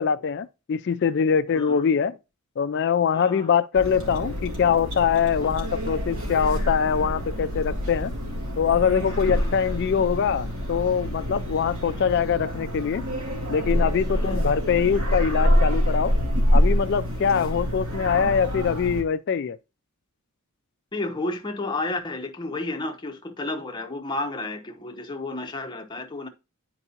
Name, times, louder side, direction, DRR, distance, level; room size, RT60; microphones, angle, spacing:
voice 1, 0.0-2.2 2.6-8.1 8.6-13.0 13.5-16.1 16.5-19.6, left 7 dB, 50° left, 0.3 m, -23 dB
voice 2, 1.5-1.9 3.1-3.5 5.4-5.5 9.3-9.5 14.1-14.4 17.3-17.5 20.9-26.3, left 2 dB, 20° left, 0.7 m, -32 dB
sound 1, 3.7-19.0, equal, 65° right, 2.2 m, -26 dB
9.8 x 4.6 x 2.8 m
head